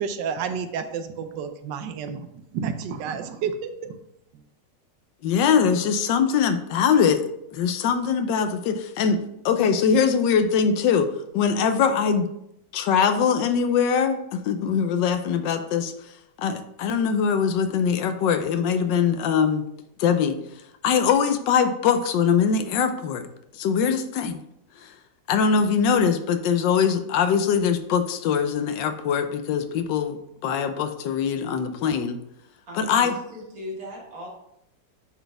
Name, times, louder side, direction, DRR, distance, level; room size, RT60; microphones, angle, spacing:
voice 1, 0.0-2.3 2.5-4.0 4.3-4.4, right 6 dB, 85° right, 9 dB, 1.3 m, -30 dB
voice 2, 5.2-7.2 7.5-11.1 11.3-12.3 12.7-15.9 16.4-19.6 20.0-20.4 20.8-23.2 23.5-24.4 24.8-24.9 25.3-32.2 32.7-33.2, left 6 dB, 90° left, 9 dB, 1.3 m, -22 dB
voice 3, 32.7-34.3, left 1 dB, 55° right, -2 dB, 2.0 m, -38 dB
8.9 x 4.1 x 3.4 m, 0.79 s
omnidirectional pair, 1.9 m